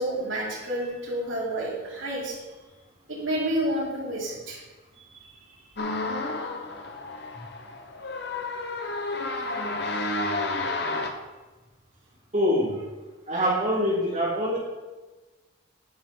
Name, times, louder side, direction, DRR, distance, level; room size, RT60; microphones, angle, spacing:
voice 1, 0.0-2.4 3.1-4.6 5.0-5.4, right 1 dB, 75° right, -4 dB, 3.4 m, -30 dB
sound 1, 5.8-11.1, left 2 dB, 55° left, 1.0 m, -31 dB
voice 2, 12.3-12.8 13.3-14.6, equal, 35° right, -9 dB, 3.4 m, -24 dB
10.5 x 5.8 x 5.6 m, 1.2 s
head